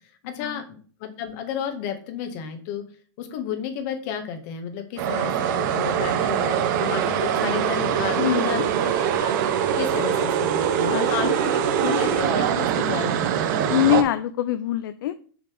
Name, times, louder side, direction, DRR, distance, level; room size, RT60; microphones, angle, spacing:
voice 1, 0.3-2.8 3.2-9.5 9.8-13.6, left 7 dB, 45° left, 6 dB, 1.8 m, -32 dB
sound 1, 5.0-14.0, right 9 dB, 55° right, 1.1 m, -23 dB
voice 2, 8.2-8.7 10.9-11.3 13.7-15.2, left 12 dB, 65° left, 11 dB, 0.6 m, -24 dB
6.5 x 6.0 x 3.5 m, 0.42 s
hypercardioid pair, 140°, 12 cm